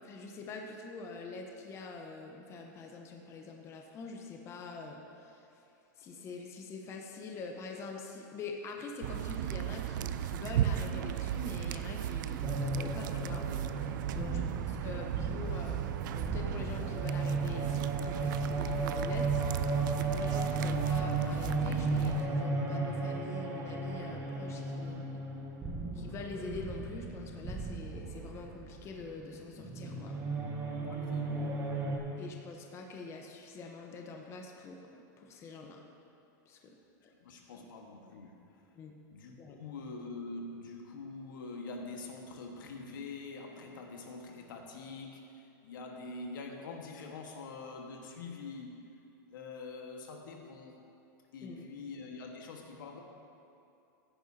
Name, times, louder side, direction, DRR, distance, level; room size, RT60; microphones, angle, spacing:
voice 1, 0.0-5.5 6.0-14.4 14.8-17.8 18.0-19.3 20.0-25.2 25.9-30.2 32.2-35.8 36.5-36.8 37.5-37.7 38.7-38.9 39.4-39.6 51.4-51.6, left 3 dB, 25° left, 2 dB, 0.9 m, -45 dB
sound 1, 9.0-22.2, right 11 dB, 70° right, 0.5 m, -36 dB
sound 2, 12.4-32.0, right 3 dB, 25° right, 1.5 m, -35 dB
voice 2, 14.2-14.7 30.9-31.6 37.0-38.6 39.1-48.8 49.3-50.8 51.3-53.0, left 3 dB, 85° left, 2 dB, 1.5 m, -45 dB
15.0 x 10.0 x 2.8 m, 2.7 s
supercardioid pair, 145°, 11 cm